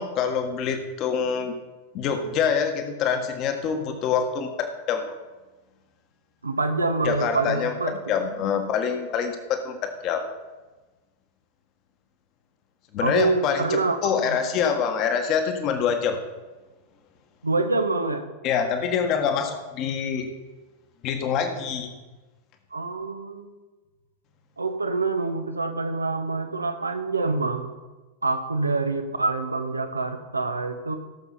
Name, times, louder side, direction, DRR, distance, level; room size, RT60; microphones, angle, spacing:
voice 1, 0.0-1.5 1.9-5.1 7.0-9.8 10.0-10.2 12.9-16.2 18.4-20.3 21.0-21.9, left 7 dB, 40° left, 5 dB, 1.6 m, -25 dB
voice 2, 6.4-7.9 13.0-14.4 17.4-18.3 22.7-23.5 24.6-27.7 28.2-31.0, right 3 dB, 80° right, 7 dB, 1.1 m, -26 dB
17.0 x 7.1 x 4.2 m, 1.2 s
figure-of-eight pair, 90°, 0 cm